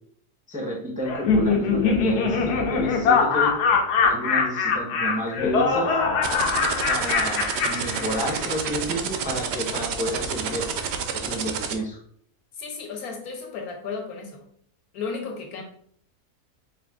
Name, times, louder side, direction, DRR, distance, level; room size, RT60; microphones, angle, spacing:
voice 1, 0.5-3.5 4.0-6.0 6.9-10.7 11.1-12.0, equal, 10° right, -1 dB, 0.4 m, -30 dB
Laughter, 1.0-8.5, left 5 dB, 90° left, 1.3 m, -23 dB
sound 1, 6.2-11.7, right 7 dB, 80° right, 0.6 m, -28 dB
voice 2, 12.6-14.4 14.9-15.6, left 5 dB, 70° left, 2 dB, 1.3 m, -34 dB
4.8 x 2.4 x 3.5 m, 0.63 s
omnidirectional pair, 1.7 m